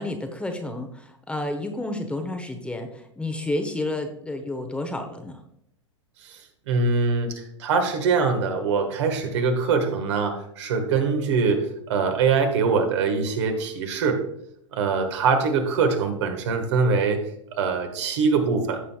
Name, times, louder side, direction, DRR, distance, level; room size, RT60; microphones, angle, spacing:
voice 1, 0.0-5.4, left 1 dB, 5° left, 5 dB, 0.9 m, -30 dB
voice 2, 6.2-14.2 14.7-17.2 17.6-18.8, right 4 dB, 60° right, 5 dB, 1.6 m, -23 dB
15.0 x 5.6 x 2.3 m, 0.75 s
figure-of-eight pair, 100°, 16 cm